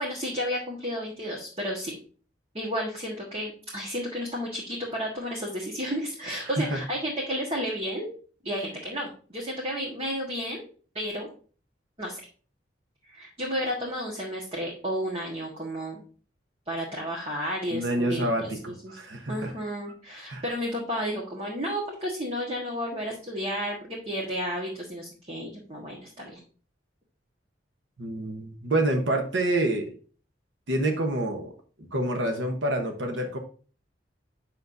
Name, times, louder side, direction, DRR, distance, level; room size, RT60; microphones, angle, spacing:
voice 1, 0.0-2.0 2.5-8.1 8.4-10.6 10.9-11.3 12.0-12.2 13.0-16.0 16.7-18.5 18.8-19.0 19.3-26.4, equal, 35° right, -2 dB, 1.5 m, -32 dB
voice 2, 17.7-19.5 20.3-20.4 28.0-29.9 30.7-31.5 31.8-33.4, right 1 dB, 90° right, 3 dB, 1.1 m, -27 dB
8.1 x 6.4 x 2.6 m, 0.40 s
head